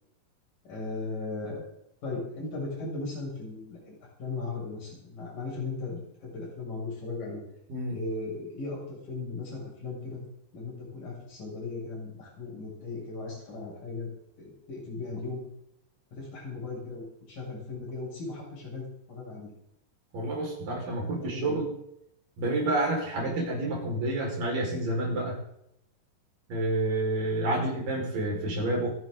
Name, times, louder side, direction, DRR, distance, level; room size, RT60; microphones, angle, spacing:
voice 1, 0.7-1.6 2.0-7.4 7.9-10.2 10.5-14.1 14.4-15.5 16.1-19.5 21.2-21.6 23.1-23.3 27.4-27.5, left 3 dB, 60° left, -3 dB, 8.9 m, -37 dB
voice 2, 20.1-21.7 22.4-25.4 26.5-29.0, right 2 dB, 65° right, -1 dB, 7.1 m, -29 dB
27.0 x 11.0 x 4.0 m, 0.79 s
omnidirectional pair, 4.3 m